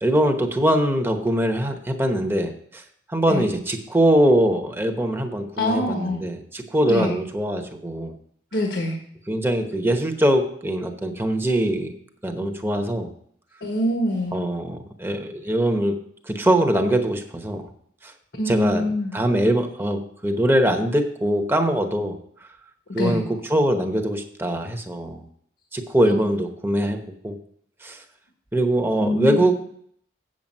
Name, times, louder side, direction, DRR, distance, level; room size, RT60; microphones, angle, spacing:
voice 1, 0.0-2.8 3.1-8.2 9.3-11.9 12.2-13.1 14.3-16.0 16.3-17.6 18.0-18.1 18.5-18.8 19.1-22.2 22.9-23.2 23.5-25.2 25.7-27.4 27.8-28.0 28.5-29.6, right 1 dB, 10° right, 5 dB, 0.9 m, -22 dB
voice 2, 5.6-6.2 6.9-7.2 8.5-9.0 13.6-14.4 18.4-19.1 22.9-23.2 26.0-26.2 29.0-29.5, left 1 dB, 75° left, 2 dB, 1.4 m, -25 dB
8.1 x 7.5 x 5.4 m, 0.65 s
head